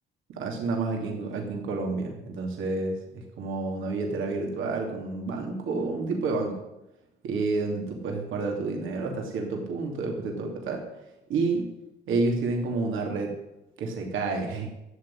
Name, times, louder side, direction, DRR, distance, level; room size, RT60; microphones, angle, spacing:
voice 1, 0.3-3.0 3.4-6.6 7.2-10.8 11.3-11.6 12.1-13.3 13.8-14.7, right 3 dB, 85° right, 2 dB, 2.8 m, -29 dB
13.0 x 7.8 x 9.9 m, 0.93 s
cardioid pair, 90°, 20 cm